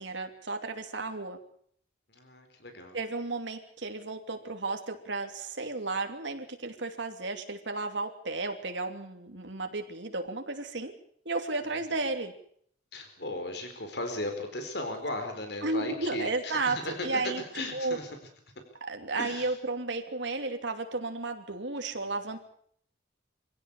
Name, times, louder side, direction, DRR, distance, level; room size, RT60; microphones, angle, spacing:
voice 1, 0.0-1.4 2.9-10.9 11.2-12.3 15.6-16.8 17.0-17.4 17.7-18.0 18.8-22.4, right 3 dB, 80° right, 5 dB, 2.9 m, -33 dB
voice 2, 2.1-3.0 11.7-11.8 12.9-18.1 19.2-19.5 21.9-22.1, left 2 dB, 65° left, 6 dB, 4.3 m, -37 dB
24.0 x 16.5 x 8.3 m, 0.64 s
head